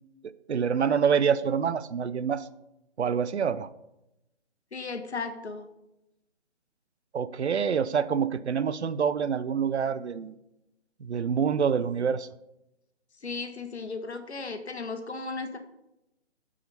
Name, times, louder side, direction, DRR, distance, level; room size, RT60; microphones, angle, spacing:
voice 1, 0.5-2.5 3.0-3.7 7.1-10.4 11.0-12.3, right 7 dB, 70° right, 14 dB, 0.6 m, -26 dB
voice 2, 4.7-5.6 13.2-15.6, left 4 dB, 65° left, 7 dB, 1.3 m, -35 dB
8.7 x 5.0 x 5.2 m, 0.90 s
figure-of-eight pair, 150°, 35 cm